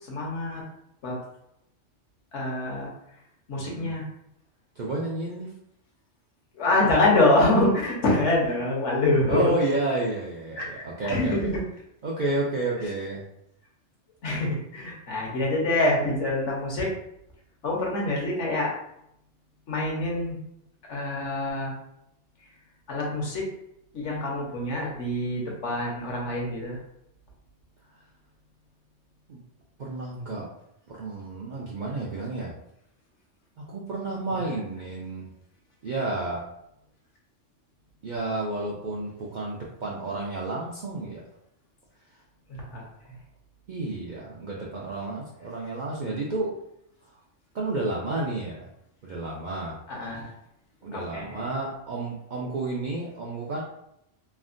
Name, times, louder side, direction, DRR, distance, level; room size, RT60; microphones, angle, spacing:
voice 1, 0.1-0.6 1.0-1.2 2.3-2.9 3.5-4.1 6.5-9.5 10.6-10.7 11.0-11.6 14.2-16.9 17.6-18.7 19.7-20.4 20.9-21.7 22.9-23.4 23.9-26.8 42.5-43.1 49.9-50.3 50.9-51.4, left 2 dB, 70° left, -2 dB, 1.1 m, -25 dB
voice 2, 3.6-3.9 4.8-5.5 9.3-11.4 12.0-13.2 29.3-29.4 29.8-30.5 30.9-32.5 33.6-35.3 35.8-36.4 38.0-41.2 43.7-46.5 47.5-48.7 49.0-49.8 50.8-53.6, right 2 dB, 60° right, -5 dB, 0.5 m, -31 dB
3.3 x 2.1 x 2.5 m, 0.78 s
omnidirectional pair, 1.3 m